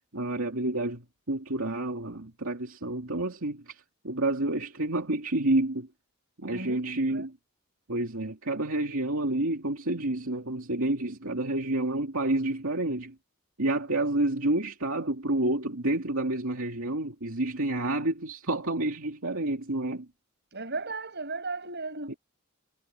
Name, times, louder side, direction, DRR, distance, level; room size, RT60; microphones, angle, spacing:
voice 1, 0.1-5.9 6.4-7.4 7.9-13.1 13.6-20.1 22.1-22.2, right 2 dB, 70° right, 2.8 m, -29 dB
voice 2, 20.5-22.2, right 3 dB, 50° right, 8.0 m, -35 dB
head